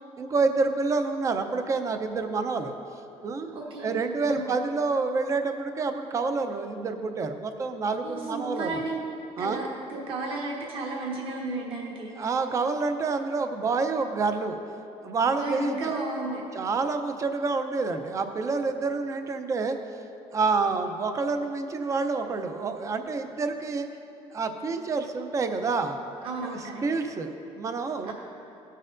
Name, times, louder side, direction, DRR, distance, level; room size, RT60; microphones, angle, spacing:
voice 1, 0.2-2.8 3.2-3.5 3.8-8.8 9.4-9.6 12.2-14.6 15.0-15.8 16.5-19.8 20.3-23.9 24.3-26.0 26.4-28.1, right 4 dB, 25° right, 7 dB, 0.5 m, -28 dB
voice 2, 3.5-4.0 4.3-4.5 8.0-9.0 9.4-12.3 15.3-16.4 26.2-26.8 28.1-28.2, right 2 dB, 50° right, -2 dB, 1.2 m, -33 dB
15.5 x 6.6 x 2.5 m, 2.7 s
cardioid pair, 155°, 11 cm